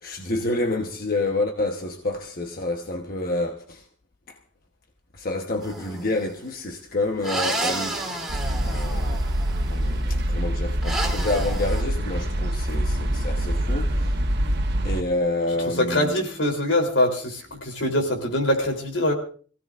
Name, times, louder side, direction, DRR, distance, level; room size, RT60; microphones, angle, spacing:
voice 1, 0.0-3.8 4.3-4.4 5.1-8.4 8.7-9.2 9.7-14.1 14.8-16.2, left 2 dB, 50° left, 1.2 m, -28 dB
sound 1, 5.6-6.2 7.2-9.7 10.8-11.8, right 1 dB, ahead, 3.2 m, -30 dB
sound 2, 8.3-15.0, right 1 dB, 60° right, 1.4 m, -25 dB
voice 2, 15.7-19.1, left 1 dB, 85° left, 3.6 m, -23 dB
25.5 x 16.5 x 2.6 m
head